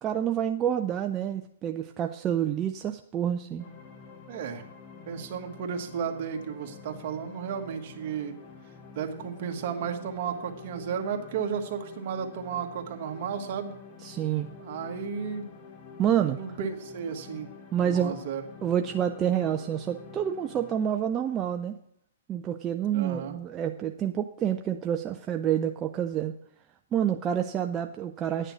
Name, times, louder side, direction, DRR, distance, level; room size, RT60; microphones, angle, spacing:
voice 1, 0.0-3.6 14.0-14.5 16.0-16.6 17.7-18.2 18.6-21.7 22.3-26.3 26.9-28.5, right 9 dB, 20° right, 5 dB, 0.4 m, -28 dB
sound 1, 3.6-20.8, left 5 dB, 25° left, 1.2 m, -47 dB
voice 2, 4.3-4.7 5.1-8.4 8.9-13.7 14.6-15.6 16.3-17.5 17.8-18.4 22.9-23.4, right 7 dB, 50° right, 4 dB, 1.5 m, -33 dB
10.5 x 6.6 x 6.1 m, 0.72 s
hypercardioid pair, 145°, 0 cm